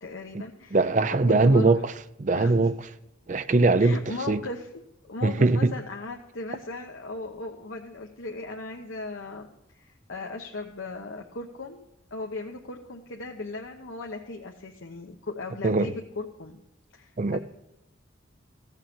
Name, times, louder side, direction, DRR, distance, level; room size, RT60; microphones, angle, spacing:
voice 1, 0.0-0.8 1.1-1.8 2.3-2.7 3.8-4.7 5.0-16.6 16.9-17.4, left 3 dB, 80° left, 1.0 m, -37 dB
voice 2, 0.7-1.9 2.2-2.7 3.3-4.0 4.3-4.4 5.2-5.7 15.6-15.9 17.2-17.4, right 3 dB, 40° right, 0.5 m, -21 dB
15.5 x 6.5 x 8.5 m
head